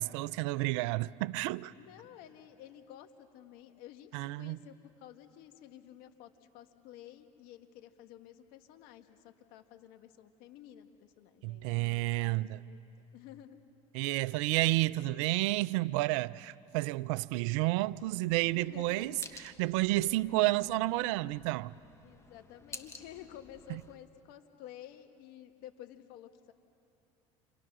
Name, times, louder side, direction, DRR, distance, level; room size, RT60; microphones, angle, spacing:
voice 1, 0.0-1.7 4.1-4.6 11.4-12.6 13.9-21.7 23.7-23.8, right 19 dB, 75° right, 0.5 m, -31 dB
voice 2, 1.8-13.6 14.0-14.2 18.5-19.4 22.0-26.5, left 11 dB, 70° left, 1.7 m, -52 dB
sound 1, 18.0-24.0, left 3 dB, 15° left, 1.7 m, -52 dB
29.0 x 25.5 x 6.2 m
supercardioid pair, 85°, 16 cm